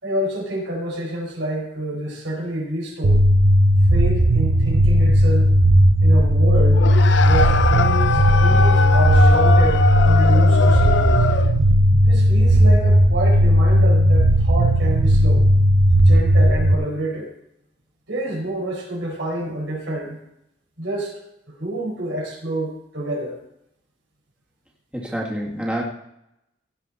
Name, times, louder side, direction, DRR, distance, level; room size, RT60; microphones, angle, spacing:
voice 1, 0.0-3.2 3.9-5.5 6.0-6.9 7.2-11.2 12.1-15.5 16.0-17.3 18.1-20.2 20.8-23.4, right 1 dB, 90° right, -2 dB, 5.0 m, -28 dB
sound 1, 3.0-16.7, equal, 70° right, 0.8 m, -15 dB
sound 2, 6.7-11.6, left 5 dB, 70° left, 0.6 m, -22 dB
voice 2, 24.9-25.8, right 1 dB, 5° right, -3 dB, 1.7 m, -27 dB
16.5 x 7.4 x 4.2 m, 0.80 s
head